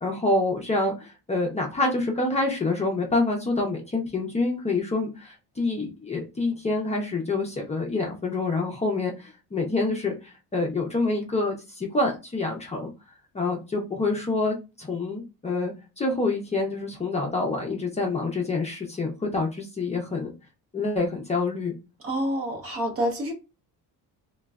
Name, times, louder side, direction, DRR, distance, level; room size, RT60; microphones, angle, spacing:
voice 1, 0.0-12.9 13.3-20.3 20.7-21.7, left 2 dB, 20° left, 0 dB, 0.6 m, -27 dB
voice 2, 22.0-23.3, equal, 40° right, 3 dB, 0.8 m, -27 dB
3.0 x 2.2 x 2.3 m, 0.28 s
cardioid pair, 120°, 36 cm